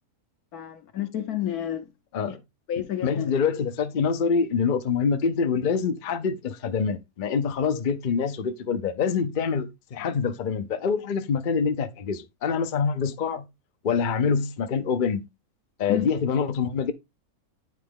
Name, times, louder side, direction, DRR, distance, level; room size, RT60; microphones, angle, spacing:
voice 1, 0.5-1.9 2.7-3.3 15.9-16.1, left 11 dB, 80° left, 1.4 m, -30 dB
voice 2, 3.0-13.5 13.8-15.3 15.8-16.9, left 6 dB, 45° left, 0.7 m, -25 dB
9.3 x 3.9 x 3.6 m
omnidirectional pair, 1.6 m